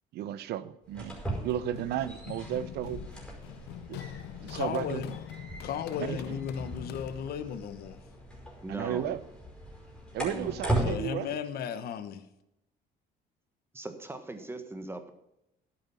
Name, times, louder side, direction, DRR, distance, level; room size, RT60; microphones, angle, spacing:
voice 1, 0.1-3.0 3.9-4.0 4.4-5.2 6.0-6.4 8.7-9.2 10.1-11.3, right 11 dB, 75° right, 16 dB, 0.7 m, -34 dB
sound 1, 0.8-10.9, right 1 dB, 5° left, 5.1 m, -38 dB
Run, 1.2-7.5, left 13 dB, 85° left, 0.6 m, -44 dB
voice 2, 4.4-5.1 5.6-8.0 10.8-12.2, left 8 dB, 65° left, 10 dB, 1.1 m, -35 dB
voice 3, 8.6-9.0 10.2-10.5 13.7-15.1, right 2 dB, 15° right, 8 dB, 1.4 m, -40 dB
11.5 x 8.8 x 5.5 m, 0.84 s
cardioid pair, 110°, 17 cm